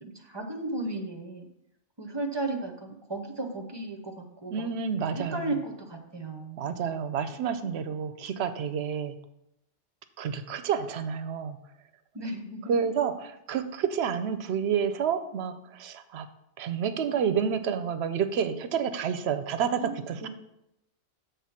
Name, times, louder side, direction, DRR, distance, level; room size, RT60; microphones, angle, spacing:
voice 1, 0.0-1.5 2.0-4.7 5.3-6.6 12.1-12.8 19.8-20.3, right 2 dB, 25° right, 4 dB, 0.7 m, -35 dB
voice 2, 4.5-5.5 6.6-9.2 10.2-11.6 12.7-16.3 16.6-20.3, right 7 dB, 65° right, 10 dB, 0.8 m, -29 dB
7.5 x 3.5 x 5.7 m, 0.83 s
omnidirectional pair, 1.2 m